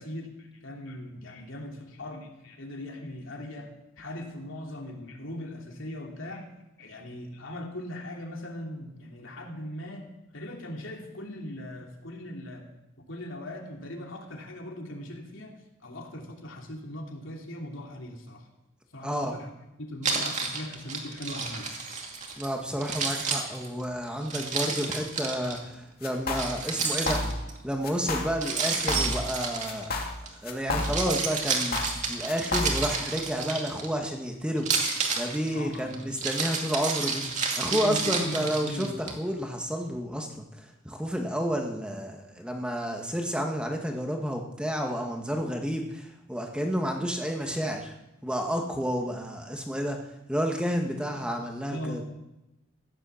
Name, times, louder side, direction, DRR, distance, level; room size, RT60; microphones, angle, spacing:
voice 1, 0.0-6.5 6.8-10.0 10.3-12.7 13.1-18.5 18.9-19.5 19.8-21.7 35.5-36.0 37.7-39.0 51.7-52.0, left 1 dB, 75° left, 1 dB, 3.0 m, -39 dB
voice 2, 19.0-19.3 22.4-27.2 27.6-29.9 30.4-31.8 32.1-34.7 35.2-37.3 37.6-47.9 48.2-50.0 50.3-52.0, equal, 5° right, 2 dB, 1.6 m, -30 dB
Keys jangling, 20.0-22.5 22.8-25.6 26.3-27.6 28.4-30.3 30.7-34.1 34.6-39.1, right 4 dB, 40° right, 2.5 m, -30 dB
sound 1, 26.0-26.5 26.8-27.5 27.8-28.4 28.6-29.4 29.7-31.2 31.5-33.0, left 2 dB, 50° left, 2.5 m, -31 dB
15.5 x 11.0 x 7.1 m, 0.93 s
head